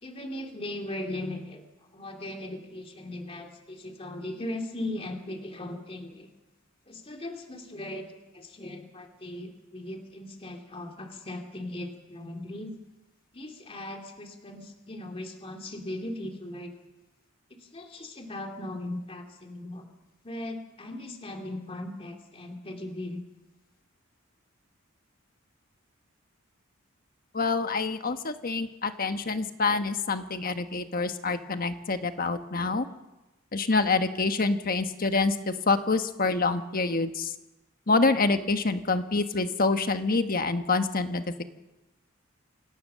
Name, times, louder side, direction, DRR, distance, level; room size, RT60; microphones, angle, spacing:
voice 1, 0.0-1.7 1.9-6.3 6.9-12.7 13.3-16.8 17.6-19.9 20.2-23.2, left 1 dB, 30° left, 4 dB, 2.5 m, -38 dB
voice 2, 27.3-32.8 33.5-37.3 37.9-41.2, left 3 dB, 45° left, 8 dB, 1.3 m, -26 dB
26.0 x 17.5 x 6.8 m, 1.0 s
head